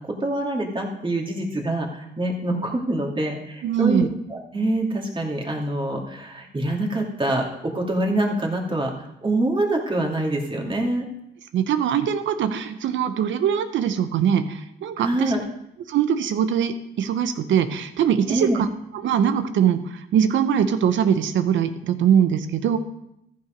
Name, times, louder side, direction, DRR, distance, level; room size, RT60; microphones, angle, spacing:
voice 1, 0.2-4.1 4.3-7.5 7.7-11.1 15.0-15.4 18.3-18.6, right 1 dB, 25° right, 0 dB, 2.4 m, -25 dB
voice 2, 3.6-4.1 11.5-15.3 15.9-18.7 18.9-22.8, right 8 dB, 70° right, 10 dB, 0.9 m, -22 dB
14.0 x 5.6 x 5.2 m, 0.80 s
cardioid pair, 90°, 20 cm